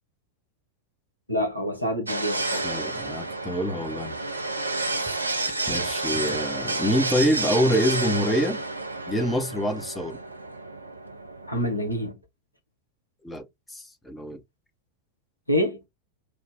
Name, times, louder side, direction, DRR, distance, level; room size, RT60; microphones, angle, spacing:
voice 1, 1.3-2.9 11.5-12.1 15.5-15.8, equal, 90° left, 1.1 m, -27 dB
sound 1, 2.1-12.1, right 2 dB, 80° right, 0.5 m, -30 dB
voice 2, 2.6-4.2 5.0-5.2 5.7-8.6 9.1-10.2 13.2-13.4 13.7-14.4, equal, 10° left, 0.9 m, -26 dB
3.5 x 2.4 x 3.6 m
figure-of-eight pair, 90°, 0 cm